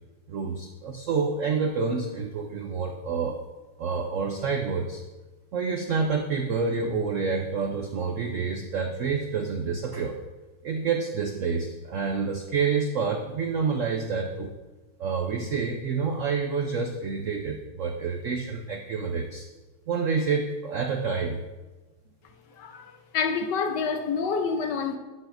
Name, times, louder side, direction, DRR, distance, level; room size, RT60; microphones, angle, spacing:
voice 1, 0.3-3.4 3.8-5.0 5.5-10.2 10.6-14.5 15.0-19.5 19.9-21.4, right 5 dB, 85° right, 0.6 m, -28 dB
voice 2, 22.6-25.0, left 5 dB, 65° left, 1.3 m, -28 dB
12.0 x 8.1 x 2.6 m
omnidirectional pair, 2.2 m